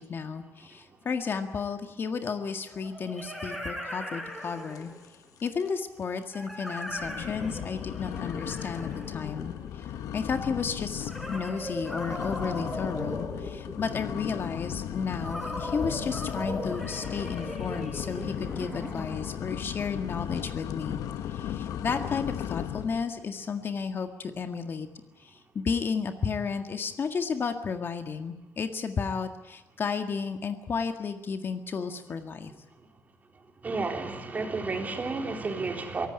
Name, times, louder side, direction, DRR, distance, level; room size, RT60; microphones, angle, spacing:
voice 1, 0.0-4.9 5.4-21.0 21.3-24.9 25.2-32.5, left 5 dB, 40° left, 6 dB, 1.8 m, -33 dB
sound 1, 1.2-1.3 2.7-5.1 6.3-9.8 11.0-14.1 15.2-19.5, equal, 5° left, 4.4 m, -38 dB
sound 2, 4.7-5.1 5.4-5.8 6.2-6.3 6.9-23.1, left 10 dB, 90° left, 1.3 m, -36 dB
voice 2, 33.6-36.1, right 3 dB, 30° right, 3 dB, 3.8 m, -31 dB
23.5 x 18.0 x 9.7 m, 0.99 s
cardioid pair, 140°, 6 cm